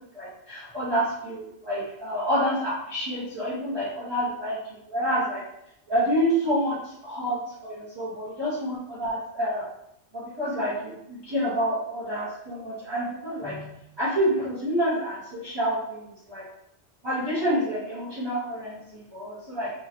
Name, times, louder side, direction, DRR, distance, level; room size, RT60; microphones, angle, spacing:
voice 1, 0.1-5.4 5.9-9.7 10.1-16.5 17.0-19.7, equal, 25° right, -11 dB, 0.8 m, -28 dB
3.0 x 2.8 x 2.5 m, 0.78 s
omnidirectional pair, 1.2 m